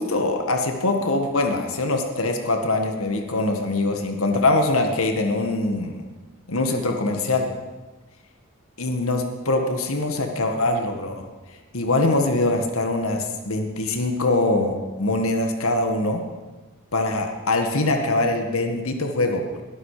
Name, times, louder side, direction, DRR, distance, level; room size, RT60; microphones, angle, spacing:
voice 1, 0.0-6.0 6.5-7.5 8.8-11.3 11.7-16.2 16.9-19.6, left 2 dB, 85° left, 4 dB, 1.9 m, -23 dB
21.5 x 12.5 x 5.1 m, 1.2 s
head